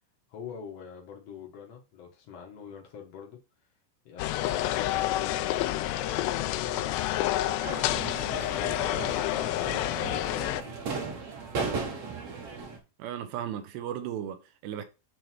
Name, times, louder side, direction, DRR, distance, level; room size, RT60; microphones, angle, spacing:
voice 1, 0.3-3.4 4.0-7.8 8.3-11.2, left 6 dB, 65° left, 1.6 m, -45 dB
sound 1, 4.2-10.6, left 14 dB, 85° left, 2.7 m, -29 dB
sound 2, 7.6-12.8, right 4 dB, 55° right, 1.7 m, -36 dB
voice 2, 13.0-14.8, right 10 dB, 80° right, 2.9 m, -35 dB
7.8 x 3.5 x 4.5 m
omnidirectional pair, 5.2 m